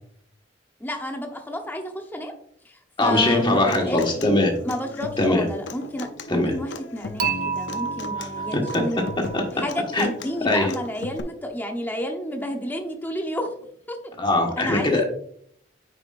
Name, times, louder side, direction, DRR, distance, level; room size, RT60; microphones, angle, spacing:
voice 1, 0.8-2.3 2.6-4.0 4.6-9.0 9.5-13.5 13.9-14.0 14.6-15.0, equal, 10° left, 3 dB, 0.9 m, -30 dB
voice 2, 3.0-4.5 5.2-5.4 6.3-6.5 8.5-8.8 9.3-9.4 9.9-10.1 10.4-10.7 14.2-15.0, left 2 dB, 25° left, 1 dB, 1.5 m, -21 dB
Human voice / Acoustic guitar, 3.2-11.2, left 3 dB, 80° left, 0.6 m, -36 dB
Dishes pots and pans / Chink clink, 7.2-10.3, right 6 dB, 45° right, 0.5 m, -31 dB
9.4 x 4.9 x 2.5 m, 0.65 s
head